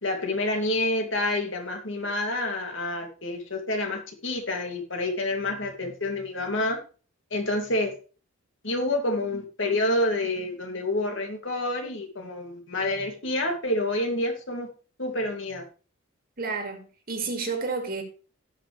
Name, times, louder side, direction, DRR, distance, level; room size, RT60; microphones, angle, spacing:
voice 1, 0.0-6.8 7.3-7.9 8.6-14.7 15.0-15.6, left 1 dB, 60° left, 2.6 m, -28 dB
voice 2, 16.4-18.0, right 4 dB, 40° right, 2.3 m, -31 dB
17.0 x 5.9 x 3.3 m
head